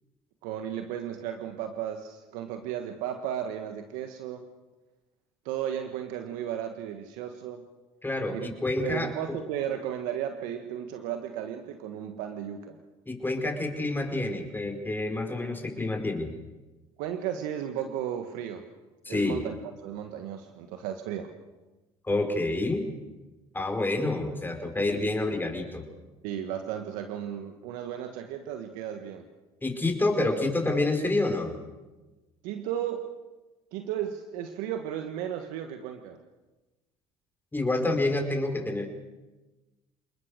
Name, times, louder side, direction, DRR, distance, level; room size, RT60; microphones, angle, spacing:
voice 1, 0.4-4.4 5.4-7.6 8.3-8.5 8.8-12.8 17.0-18.6 19.1-19.5 19.8-21.3 26.2-29.2 32.4-33.0 33.7-36.2, right 10 dB, 80° right, 6 dB, 1.5 m, -34 dB
voice 2, 8.0-9.4 13.1-16.3 19.1-19.4 22.0-22.9 23.5-25.8 29.6-31.5 37.5-38.9, left 2 dB, 15° left, 4 dB, 5.1 m, -28 dB
28.5 x 20.0 x 6.7 m, 1.2 s
supercardioid pair, 75°, 14 cm